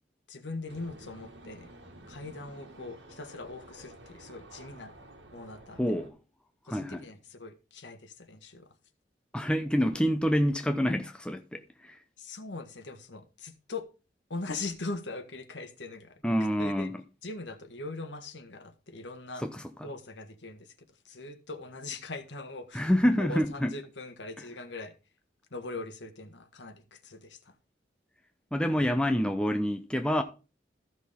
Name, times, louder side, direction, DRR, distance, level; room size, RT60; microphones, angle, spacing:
voice 1, 0.3-1.7 2.1-4.9 5.3-5.9 6.7-8.7 12.2-13.8 14.3-16.2 16.6-16.9 17.2-19.4 19.8-20.7 21.0-22.9 23.2-24.9 25.5-27.5, left 3 dB, 85° left, 1.6 m, -41 dB
sound 1, 0.7-6.1, right 1 dB, 80° right, 2.0 m, -51 dB
voice 2, 5.8-6.1 6.7-7.0 9.3-12.0 16.2-17.0 19.4-19.9 22.7-23.7 28.5-30.2, equal, 5° left, 0.6 m, -27 dB
14.0 x 6.3 x 3.6 m
head